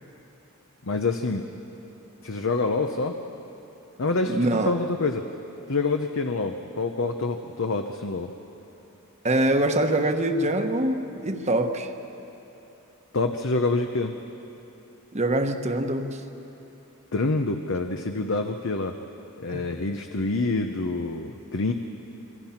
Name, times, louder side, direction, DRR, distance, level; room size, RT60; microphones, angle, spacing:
voice 1, 0.8-1.5 2.2-3.2 4.0-5.3 5.7-8.3 13.1-14.2 17.1-19.0 19.4-21.7, left 3 dB, 60° left, 5 dB, 0.9 m, -27 dB
voice 2, 4.3-4.7 9.2-11.9 15.1-16.2 19.5-19.6, right 1 dB, 30° right, 6 dB, 1.2 m, -24 dB
26.0 x 23.0 x 5.9 m, 3.0 s
head